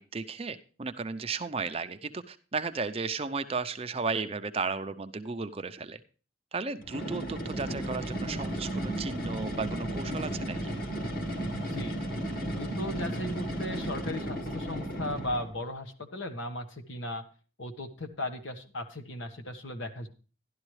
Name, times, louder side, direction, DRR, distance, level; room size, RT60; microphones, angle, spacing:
voice 1, 0.0-6.0 6.5-10.7, right 4 dB, 30° right, 10 dB, 0.5 m, -34 dB
sound 1, 6.8-15.6, right 1 dB, 45° left, 1.8 m, -34 dB
voice 2, 11.5-12.0 12.5-17.2 17.6-20.1, left 1 dB, 70° left, 7 dB, 1.3 m, -37 dB
12.0 x 11.5 x 3.2 m, 0.36 s
head